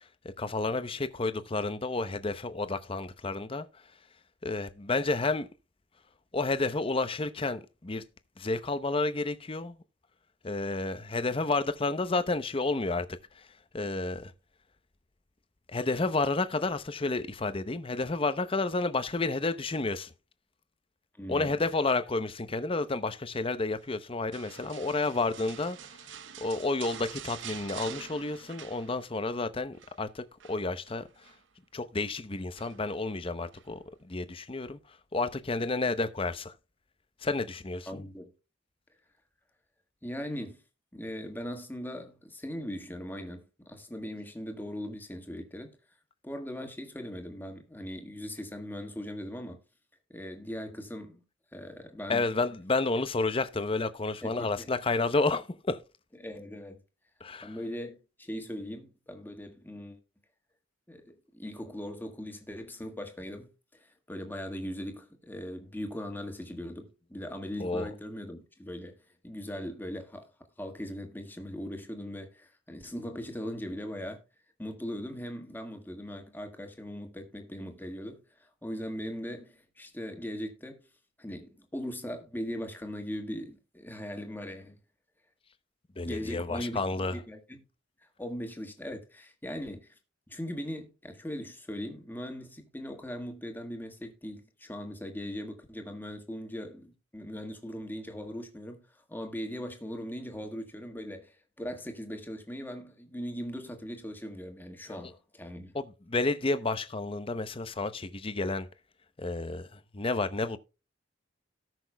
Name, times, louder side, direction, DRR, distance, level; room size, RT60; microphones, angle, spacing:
voice 1, 0.4-3.7 4.4-5.5 6.3-8.0 8.4-9.7 10.4-13.1 13.4-13.5 13.7-14.3 15.7-20.1 21.3-25.8 26.4-31.1 31.7-34.8 35.1-36.5 37.2-38.0 52.1-55.8 57.2-57.6 67.6-67.9 86.0-87.2 104.9-105.1 105.7-108.7 109.2-110.6, left 3 dB, 30° left, 0.7 m, -31 dB
voice 2, 21.2-21.5 37.9-38.3 40.0-40.6 40.9-45.8 46.2-49.6 50.1-51.2 51.5-52.3 54.2-54.7 56.2-56.8 57.4-60.0 60.9-70.3 70.6-74.2 74.6-80.8 81.2-84.8 86.0-86.8 87.1-87.6 88.2-89.9 90.3-105.7, equal, 10° left, 1.7 m, -39 dB
sound 1, 24.3-29.3 29.6-30.0 30.4-31.4 32.6-33.0 33.5-33.7, right 9 dB, 75° right, 0.8 m, -46 dB
18.0 x 6.1 x 2.3 m
head